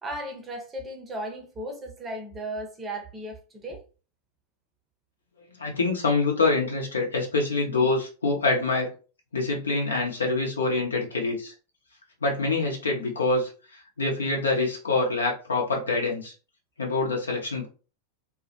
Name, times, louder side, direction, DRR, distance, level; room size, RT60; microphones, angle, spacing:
voice 1, 0.0-3.8, right 1 dB, 20° right, 0.6 m, -36 dB
voice 2, 5.6-8.9 9.3-11.5 12.2-16.3 16.8-17.7, left 3 dB, 70° left, 0.7 m, -25 dB
2.1 x 2.1 x 2.8 m
figure-of-eight pair, 90°, 0 cm